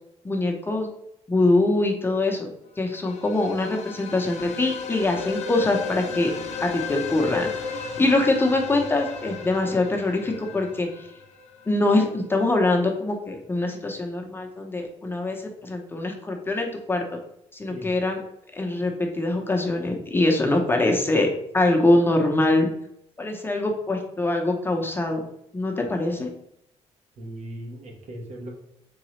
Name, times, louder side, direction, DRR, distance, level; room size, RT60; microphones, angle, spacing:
voice 1, 0.2-0.9 1.3-2.5 2.8-6.3 6.6-10.9 11.7-17.0 17.5-18.2 18.5-22.7 23.2-25.2 25.5-26.3, left 2 dB, 20° left, 2 dB, 0.8 m, -23 dB
sound 1, 2.9-11.7, left 5 dB, 65° left, 0.6 m, -34 dB
voice 2, 27.2-28.5, right 1 dB, 65° right, 0 dB, 1.2 m, -38 dB
3.9 x 3.8 x 3.1 m, 0.77 s
cardioid pair, 105°, 12 cm